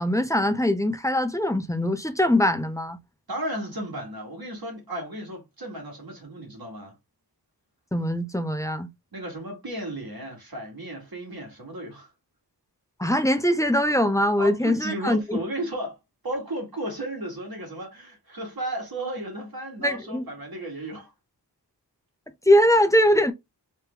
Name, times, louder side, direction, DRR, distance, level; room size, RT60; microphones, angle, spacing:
voice 1, 0.0-3.0 7.9-8.9 13.0-15.4 19.8-20.2 22.5-23.3, left 1 dB, 10° left, 0.6 m, -22 dB
voice 2, 3.3-6.9 9.1-12.1 14.4-16.0 16.2-21.1, right 1 dB, 60° right, 1.8 m, -34 dB
3.3 x 3.2 x 3.3 m
wide cardioid pair, 70°, 42 cm